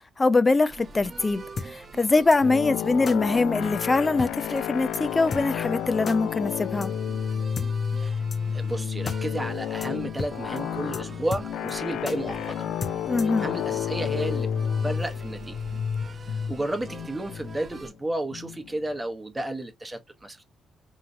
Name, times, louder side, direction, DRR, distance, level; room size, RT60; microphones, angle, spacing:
voice 1, 0.2-6.9 13.1-13.5, left 3 dB, 25° left, 0.4 m, -23 dB
sound 1, 0.7-17.9, right 4 dB, 40° right, 0.7 m, -45 dB
sound 2, 1.6-1.7 2.3-2.4 3.1-3.2 3.8-3.9 4.2-4.3 4.6-4.7 4.9-5.0 5.3-5.4 6.1-6.2 6.8-6.9 7.6-7.7 8.3-8.4 8.7-8.8 9.1-9.2 9.4-9.5 9.8-9.9 10.2-10.3 10.6-10.7 10.9-11.0 11.3-11.7 12.1-12.2 12.8-13.4, left 4 dB, 45° left, 0.9 m, -33 dB
sound 3, 2.4-18.9, left 8 dB, 80° left, 0.5 m, -31 dB
voice 2, 8.5-12.7 13.3-14.5 14.8-15.6 16.2-20.4, right 1 dB, 15° right, 1.0 m, -32 dB
4.4 x 3.1 x 2.6 m
cardioid pair, 90°, 0 cm